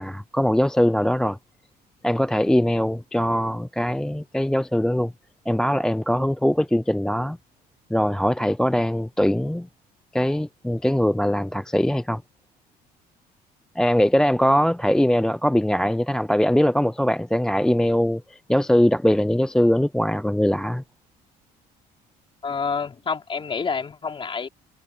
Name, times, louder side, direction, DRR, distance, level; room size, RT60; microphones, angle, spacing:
voice 1, 0.0-1.4 2.0-5.1 5.5-7.4 7.9-9.7 10.1-12.2 13.8-20.8, equal, 5° left, 0.4 m, -21 dB
voice 2, 22.4-24.5, left 5 dB, 30° left, 3.4 m, -28 dB
cardioid pair, 110°, 17 cm